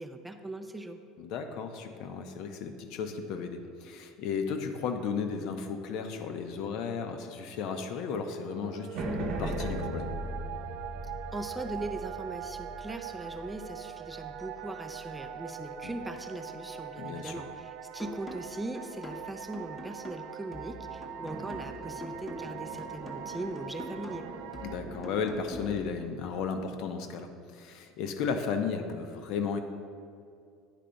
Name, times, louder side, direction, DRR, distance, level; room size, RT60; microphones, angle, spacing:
voice 1, 0.0-1.0 11.3-24.3, right 2 dB, 5° right, 6 dB, 0.4 m, -40 dB
voice 2, 1.2-10.1 15.8-16.0 17.0-17.4 24.6-29.6, left 6 dB, 55° left, 7 dB, 0.7 m, -34 dB
sound 1, 8.3-24.8, right 9 dB, 65° right, 0.4 m, -42 dB
sound 2, 8.9-15.4 20.8-25.7, right 1 dB, 50° right, 0.8 m, -40 dB
sound 3, 18.0-26.0, left 1 dB, 15° left, 0.8 m, -46 dB
9.9 x 3.3 x 5.1 m, 2.4 s
cardioid pair, 145°, 0 cm